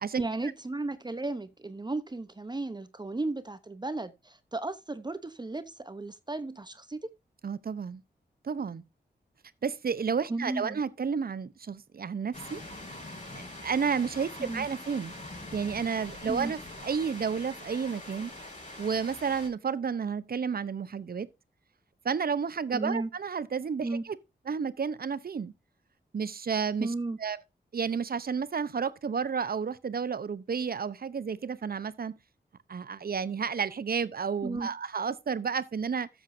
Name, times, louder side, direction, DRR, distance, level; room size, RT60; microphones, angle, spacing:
voice 1, 0.2-7.1 10.3-10.8 14.4-14.7 16.3-16.5 22.7-23.1 23.8-24.0 26.8-27.2 34.4-34.7, right 2 dB, 25° right, 0.9 m, -34 dB
voice 2, 7.4-8.0 8.4-8.8 9.6-12.6 13.3-15.1 15.5-16.6 16.8-18.3 18.8-21.3 22.0-24.2 24.5-25.5 26.1-26.9 27.2-27.4 27.7-32.2 32.7-36.1, right 6 dB, 55° right, 0.8 m, -31 dB
sound 1, 12.3-19.5, left 1 dB, 40° left, 6.3 m, -44 dB
13.0 x 8.0 x 2.7 m
cardioid pair, 65°, 18 cm